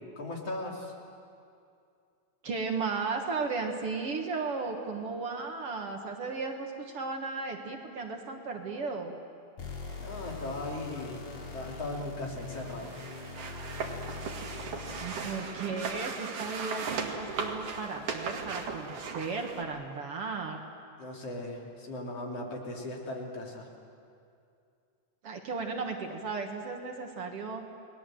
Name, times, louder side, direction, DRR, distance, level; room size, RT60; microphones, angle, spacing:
voice 1, 0.2-0.9 10.0-11.2 11.5-12.9 21.0-23.7, left 2 dB, 55° left, -1 dB, 3.9 m, -38 dB
voice 2, 2.4-9.1 15.0-20.6 25.2-27.6, right 4 dB, 55° right, 3 dB, 2.3 m, -35 dB
sound 1, 9.6-15.3, left 4 dB, 80° left, 4.5 m, -42 dB
sound 2, 12.4-19.6, right 5 dB, 85° right, 3.5 m, -37 dB
30.0 x 20.0 x 7.8 m, 2.5 s
omnidirectional pair, 3.4 m